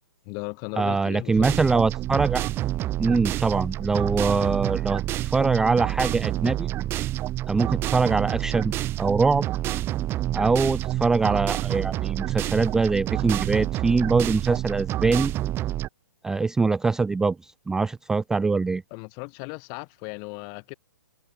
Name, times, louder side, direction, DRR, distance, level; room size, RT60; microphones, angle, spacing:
voice 1, 0.3-1.6 18.9-20.7, left 38 dB, 35° left, 5.8 m, -36 dB
voice 2, 0.8-2.4 3.0-6.7 7.5-9.4 10.3-15.3 16.2-18.8, right 4 dB, 5° right, 0.4 m, -23 dB
sound 1, 1.4-15.9, right 14 dB, 25° right, 1.4 m, -28 dB
hypercardioid pair, 130°, 10 cm